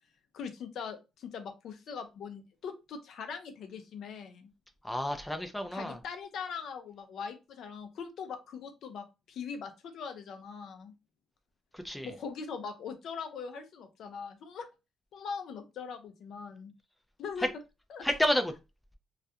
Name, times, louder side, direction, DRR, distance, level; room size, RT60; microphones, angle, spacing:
voice 1, 0.3-4.5 5.7-10.9 12.0-14.7 15.1-16.7 17.2-17.5 17.9-18.1, left 6 dB, 70° left, 0.5 m, -41 dB
voice 2, 4.8-6.0 11.7-12.1 17.4-17.5 18.0-18.5, left 1 dB, 5° left, 0.4 m, -30 dB
2.3 x 2.2 x 2.7 m
cardioid pair, 90°, 0 cm